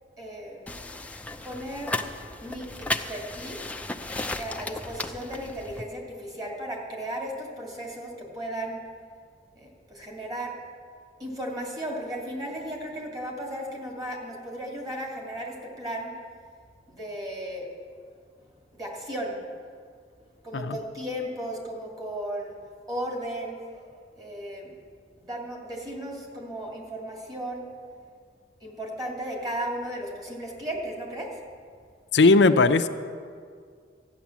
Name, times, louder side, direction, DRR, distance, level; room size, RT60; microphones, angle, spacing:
voice 1, 0.2-1.1 1.4-2.0 2.4-3.7 4.4-8.8 9.5-10.6 11.2-16.1 16.9-17.7 18.4-19.4 20.4-22.6 22.9-24.7 25.2-27.7 28.6-31.4, right 1 dB, 20° right, -1 dB, 2.5 m, -35 dB
sound 1, 0.7-5.8, left 2 dB, 10° left, 0.5 m, -34 dB
voice 2, 32.1-32.9, left 3 dB, 90° left, 8 dB, 0.6 m, -18 dB
14.0 x 9.8 x 7.3 m, 2.1 s
head